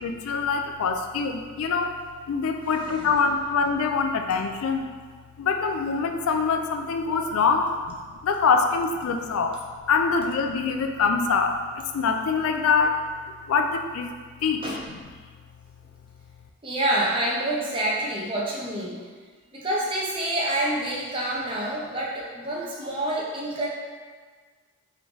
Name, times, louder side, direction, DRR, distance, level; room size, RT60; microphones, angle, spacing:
voice 1, 0.0-2.0 2.3-4.9 5.4-8.0 8.2-9.6 9.9-13.0 13.5-14.1 14.4-14.6, left 5 dB, 65° left, 5 dB, 0.3 m, -24 dB
voice 2, 16.6-19.0 19.5-23.7, right 1 dB, 25° right, -4 dB, 0.7 m, -27 dB
3.5 x 3.2 x 3.8 m, 1.5 s
head